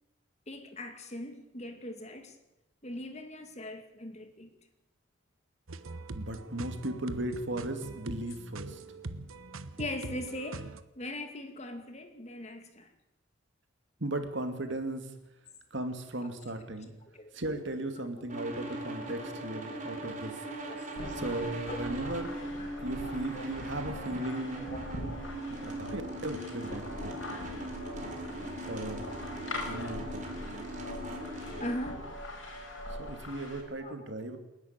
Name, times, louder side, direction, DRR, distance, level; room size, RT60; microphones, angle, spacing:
voice 1, 0.5-2.4 2.8-4.5 8.7-8.8 9.8-10.6 11.0-12.9 17.1-17.3 20.7-20.9 21.7-21.8 22.6-22.7 23.3-23.5 23.9-24.1 24.5-24.8 29.3-29.4 31.6-32.0 33.8-34.0 34.2-34.3, left 1 dB, 30° left, 6 dB, 2.3 m, -40 dB
sound 1, 5.7-10.8, right 2 dB, 75° right, 1.1 m, -43 dB
voice 2, 6.1-8.8 14.0-15.1 15.7-16.9 17.3-20.4 21.1-22.4 22.8-24.6 25.8-27.1 28.7-29.2 29.6-30.3 33.0-34.4, right 1 dB, 55° right, 7 dB, 2.5 m, -36 dB
sound 2, 18.3-31.7, right 1 dB, 35° right, 3.9 m, -40 dB
sound 3, 21.0-33.6, left 1 dB, 65° left, 5.2 m, -42 dB
28.5 x 11.0 x 8.9 m, 0.94 s
head